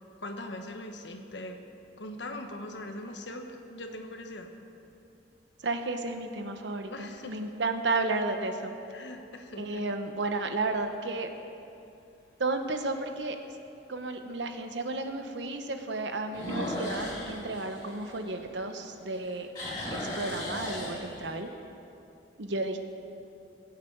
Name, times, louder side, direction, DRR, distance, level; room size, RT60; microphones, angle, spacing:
voice 1, 0.2-1.6 2.0-4.5 6.9-7.5 8.8-9.8, left 1 dB, 75° left, 5 dB, 1.3 m, -41 dB
sound 1, 2.9-3.3 4.0-4.1 9.3-9.8 10.2-10.3 10.9-11.0 11.2-11.3 12.8-12.9 16.3-18.8 19.1-21.5, left 1 dB, 25° left, 3.6 m, -37 dB
voice 2, 5.6-8.7 9.6-11.3 12.4-13.4 13.9-19.5 19.9-21.5 22.4-22.8, right 3 dB, 80° right, 6 dB, 1.1 m, -32 dB
22.5 x 8.3 x 4.7 m, 2.7 s
head